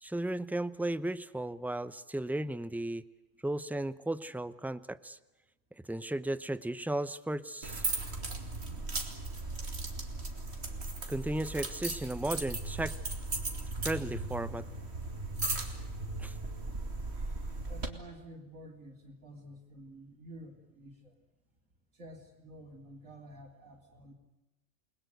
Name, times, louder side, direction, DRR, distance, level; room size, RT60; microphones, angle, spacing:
voice 1, 0.0-3.0 3.4-5.2 5.9-7.8 11.1-12.9 13.8-14.7 16.2-16.4, right 1 dB, ahead, 15 dB, 0.5 m, -35 dB
sound 1, 7.6-17.9, right 2 dB, 50° right, 2.8 m, -37 dB
voice 2, 17.7-21.1 21.9-24.1, right 1 dB, 75° right, -3 dB, 3.9 m, -50 dB
29.0 x 21.5 x 8.0 m, 1.0 s
omnidirectional pair, 1.4 m